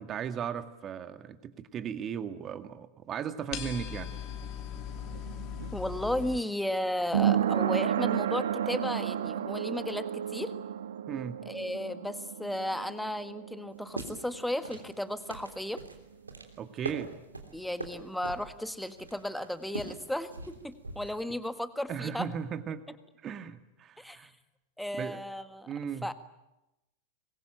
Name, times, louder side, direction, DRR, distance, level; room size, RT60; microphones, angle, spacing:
voice 1, 0.0-4.1 11.1-11.4 16.6-17.1 21.9-22.8 23.2-24.3 24.9-25.2 25.7-26.1, right 8 dB, 30° right, 9 dB, 1.9 m, -36 dB
sound 1, 3.5-6.4, left 10 dB, 40° left, 2.8 m, -39 dB
sound 2, 4.1-15.6 15.8-15.9, right 10 dB, 65° right, 1.2 m, -33 dB
voice 2, 5.7-10.5 11.4-15.8 17.5-22.3 24.0-24.3 24.8-25.7 26.0-26.1, left 1 dB, ahead, 11 dB, 1.6 m, -34 dB
sound 3, 13.7-21.2, right 2 dB, 80° right, 3.2 m, -43 dB
25.5 x 21.5 x 9.1 m, 0.96 s
figure-of-eight pair, 90°, 0 cm